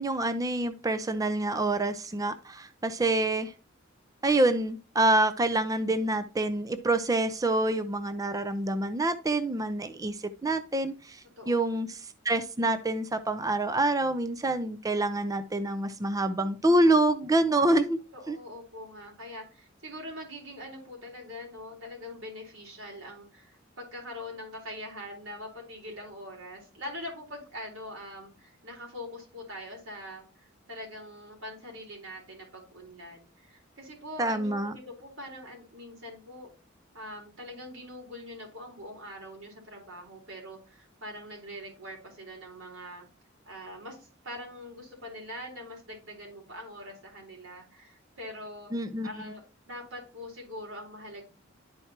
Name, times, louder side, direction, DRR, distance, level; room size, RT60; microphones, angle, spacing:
voice 1, 0.0-3.5 4.2-18.0 18.3-18.4 34.2-34.7 48.7-49.3, right 2 dB, 20° right, 10 dB, 0.4 m, -27 dB
voice 2, 18.1-36.5 36.9-43.0 43.5-48.7 49.0-51.3, left 1 dB, 90° right, -1 dB, 3.9 m, -43 dB
11.0 x 4.5 x 2.9 m, 0.35 s
head